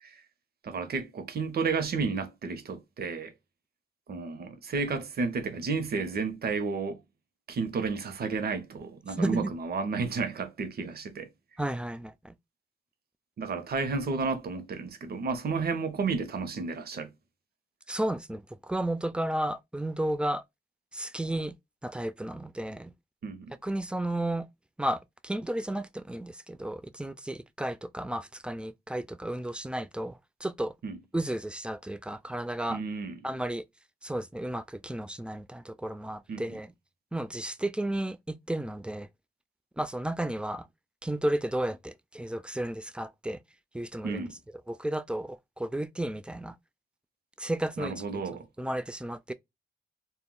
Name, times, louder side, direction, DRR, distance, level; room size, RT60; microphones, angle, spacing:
voice 1, 0.6-3.3 4.1-7.0 7.5-11.3 13.4-17.1 23.2-23.6 30.8-31.0 32.7-33.2 36.3-36.4 44.0-44.4 47.8-48.5, right 4 dB, 70° right, 0.6 m, -32 dB
voice 2, 9.2-9.5 11.6-12.3 17.9-20.4 20.9-21.5 21.8-22.9 23.6-24.5 24.8-30.7 31.1-32.8 33.2-33.6 34.0-36.7 37.1-39.1 39.8-40.7 41.0-43.4 43.7-44.3 44.7-46.5 47.4-47.9 48.6-49.3, right 1 dB, 5° right, 0.3 m, -33 dB
2.1 x 2.0 x 3.7 m
cardioid pair, 45°, 16 cm